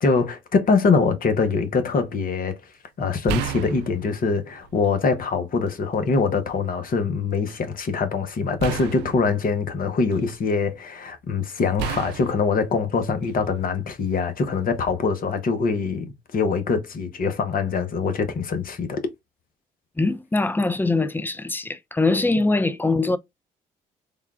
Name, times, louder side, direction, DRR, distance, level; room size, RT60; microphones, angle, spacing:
voice 1, 0.0-2.7 3.0-19.0, left 4 dB, 50° left, 1.0 m, -23 dB
sound 1, 1.4-1.7 3.3-5.1 5.6-6.5 8.6-10.5 11.8-13.6 14.7-14.9, right 8 dB, 75° right, 0.4 m, -34 dB
voice 2, 20.0-23.2, left 3 dB, 10° left, 0.5 m, -22 dB
3.6 x 2.3 x 3.5 m
hypercardioid pair, 55°, 18 cm